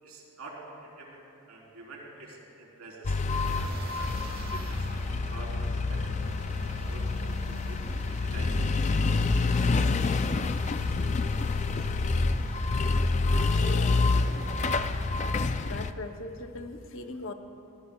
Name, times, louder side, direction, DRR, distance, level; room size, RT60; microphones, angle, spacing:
voice 1, 0.0-3.5 3.9-4.1 4.5-7.8 8.1-8.5, right 2 dB, 80° right, -3 dB, 3.7 m, -47 dB
sound 1, 3.0-15.9, left 3 dB, 30° left, 0.3 m, -27 dB
sound 2, 3.3-15.1, right 1 dB, 45° right, 1.2 m, -44 dB
voice 2, 13.6-14.0 15.6-17.3, left 2 dB, 60° left, 6 dB, 0.8 m, -39 dB
25.0 x 15.5 x 2.3 m, 2.8 s
head